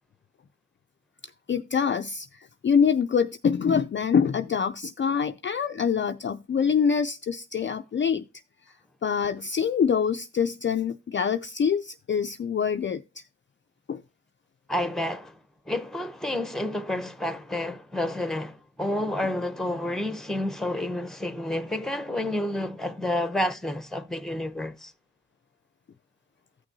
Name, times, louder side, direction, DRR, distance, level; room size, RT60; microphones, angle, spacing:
voice 1, 1.5-8.3 9.0-13.2 13.9-14.0, left 6 dB, 40° left, 0.4 m, -25 dB
voice 2, 14.7-15.4 15.7-24.9, left 1 dB, ahead, 0.8 m, -30 dB
14.5 x 6.0 x 2.6 m
cardioid pair, 50°, 31 cm